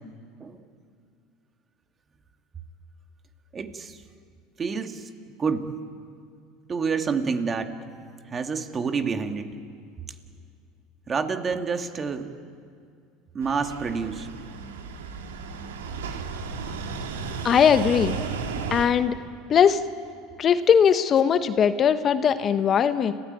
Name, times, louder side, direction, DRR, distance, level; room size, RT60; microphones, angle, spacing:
voice 1, 3.5-4.0 4.6-5.1 5.4-5.7 6.7-7.8 8.3-9.5 11.1-12.3 13.3-14.3, right 5 dB, 30° right, 6 dB, 2.1 m, -28 dB
sound 1, 13.4-18.9, right 5 dB, 85° right, 2.3 m, -34 dB
voice 2, 17.4-18.2 18.7-19.2 19.5-19.8 20.4-23.1, left 7 dB, 40° left, 11 dB, 1.1 m, -20 dB
29.5 x 16.0 x 9.2 m, 2.3 s
hypercardioid pair, 80°, 0 cm